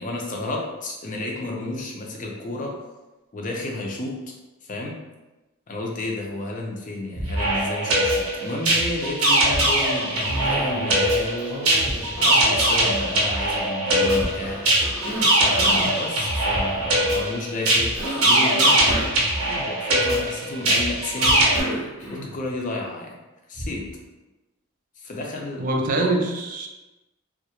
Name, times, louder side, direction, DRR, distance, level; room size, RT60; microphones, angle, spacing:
voice 1, 0.0-2.7 3.3-4.1 4.6-5.0 5.7-11.5 12.2-14.6 15.3-17.9 18.2-18.8 19.7-21.4 22.1-23.1 23.5-23.8 25.0-25.7 26.0-26.2, left 2 dB, 40° left, -1 dB, 0.4 m, -31 dB
sound 1, 7.1-7.8 9.5-10.1 11.8-12.4 14.1-14.8 16.5-17.1 18.8-19.5 21.2-21.8 23.5-24.2, equal, ahead, 0.6 m, -35 dB
sound 2, 7.2-21.6, right 1 dB, 85° right, 0.6 m, -21 dB
Cough, 10.3-11.1 11.4-13.4 14.0-16.0 17.9-19.9 21.2-22.5, right 1 dB, 90° left, 1.0 m, -33 dB
voice 2, 25.6-26.7, right 2 dB, 40° right, 2 dB, 0.3 m, -24 dB
2.3 x 2.0 x 2.9 m, 1.1 s
head